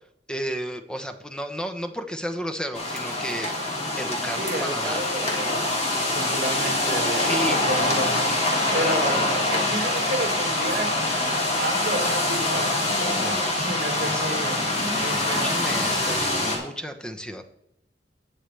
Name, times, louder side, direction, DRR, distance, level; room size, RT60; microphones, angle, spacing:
voice 1, 0.3-3.5 4.0-5.0 7.1-7.7 8.7-9.3 13.2-13.5 14.1-14.2 15.1-17.4, equal, 5° left, 7 dB, 0.8 m, -32 dB
sound 1, 2.7-16.6, left 2 dB, 40° left, 2.6 m, -24 dB
voice 2, 4.4-8.2 8.7-9.2 9.5-10.9 11.4-14.6 14.9-16.2, right 2 dB, 55° right, 2 dB, 2.0 m, -32 dB
19.0 x 6.6 x 3.3 m, 0.78 s
head